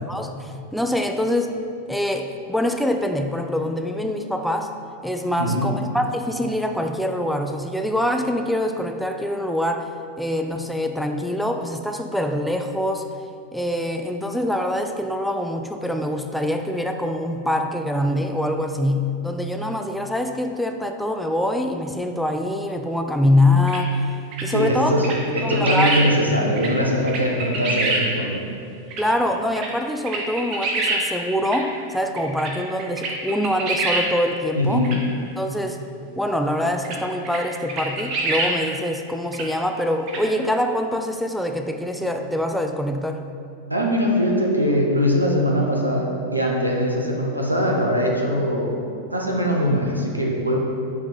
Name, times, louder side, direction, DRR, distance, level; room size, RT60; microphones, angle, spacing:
voice 1, 0.1-1.5 1.9-4.8 5.0-9.9 10.2-13.1 13.5-24.1 24.4-25.0 25.4-26.0 29.0-34.9 35.4-35.8 36.2-43.3, left 1 dB, ahead, 5 dB, 0.3 m, -24 dB
sound 1, 23.7-23.8 24.3-24.4 25.0-26.0 26.6-26.7 27.1-28.0 28.9-29.0 29.5-29.7 30.0-31.0 31.4-31.6 32.2-32.5 32.8-34.0 34.8-35.0 36.8-37.0 37.2-37.4 37.7-38.5 39.3-39.4 40.1-40.2, right 3 dB, 40° right, 1.0 m, -25 dB
voice 2, 24.5-28.4 34.5-34.9 43.7-50.6, equal, 85° right, -1 dB, 0.8 m, -21 dB
5.6 x 3.5 x 5.6 m, 2.5 s
figure-of-eight pair, 90°, 0 cm